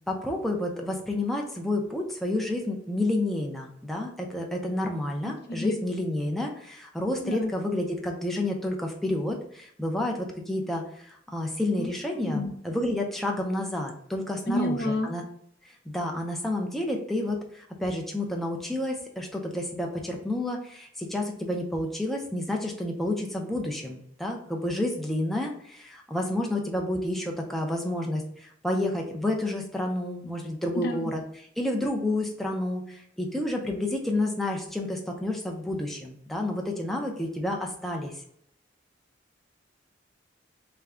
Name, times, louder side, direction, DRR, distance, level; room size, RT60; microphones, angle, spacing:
voice 1, 0.1-15.2 15.9-31.2 31.6-38.1, left 1 dB, ahead, 0 dB, 0.5 m, -30 dB
voice 2, 7.2-7.5 11.8-11.9 12.3-12.5 14.5-15.1 30.7-31.1, left 1 dB, 55° left, 4 dB, 0.6 m, -29 dB
3.3 x 2.2 x 3.6 m, 0.68 s
head